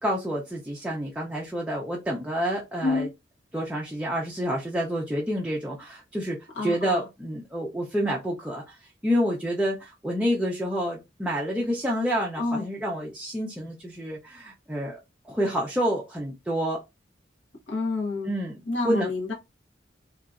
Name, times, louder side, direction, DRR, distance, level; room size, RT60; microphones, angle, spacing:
voice 1, 0.0-3.1 3.5-6.4 6.6-15.0 15.2-16.8 18.2-18.6 18.8-19.1, equal, 5° right, 0.4 m, -28 dB
voice 2, 6.5-7.1 12.4-12.7 17.7-18.3 18.7-19.3, left 3 dB, 90° left, 1.2 m, -28 dB
2.8 x 2.5 x 2.3 m
head